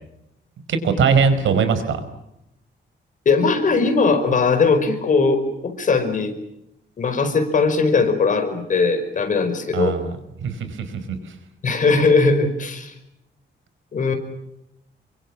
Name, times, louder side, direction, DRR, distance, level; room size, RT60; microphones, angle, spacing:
voice 1, 0.7-2.0 9.7-10.0 10.4-10.8 11.1-11.2, right 5 dB, 85° right, 11 dB, 4.8 m, -20 dB
voice 2, 3.3-6.3 7.0-10.0 11.6-12.9 13.9-14.1, left 4 dB, 40° left, 8 dB, 5.2 m, -19 dB
30.0 x 24.0 x 7.4 m, 0.84 s
wide cardioid pair, 170°, 19 cm